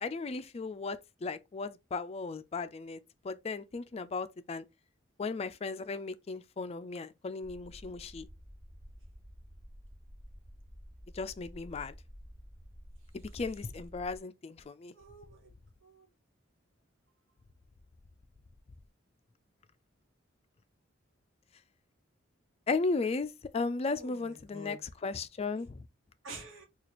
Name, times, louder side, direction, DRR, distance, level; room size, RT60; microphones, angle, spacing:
voice 1, 0.0-4.6 5.2-8.3 11.1-11.9 13.3-14.9 22.7-24.8 25.0-25.9, left 4 dB, 30° left, 0.3 m, -36 dB
sound 1, 7.4-14.2, equal, 40° right, 0.9 m, -51 dB
voice 2, 14.9-15.5 15.8-16.1 23.8-24.8 26.2-26.7, right 1 dB, 75° right, 1.4 m, -48 dB
4.1 x 2.4 x 2.9 m
head